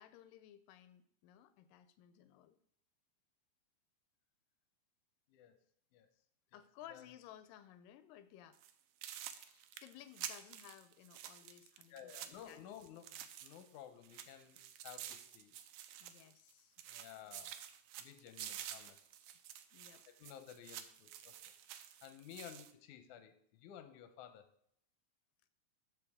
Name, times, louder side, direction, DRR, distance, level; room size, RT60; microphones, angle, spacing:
voice 1, 0.0-2.6 6.5-8.6 9.4-12.1 12.5-12.6 16.0-16.8 19.7-20.0, left 11 dB, 90° left, 12 dB, 2.2 m, -58 dB
sound 1, 8.5-8.7 9.0-13.8 14.0-16.5 16.8-22.7, right 11 dB, 85° right, 2.3 m, -50 dB
voice 2, 11.9-15.5 16.8-17.5 18.0-19.0 20.2-21.3 22.0-24.5, left 10 dB, 75° left, 8 dB, 2.1 m, -54 dB
13.5 x 5.1 x 3.6 m, 0.69 s
omnidirectional pair, 3.8 m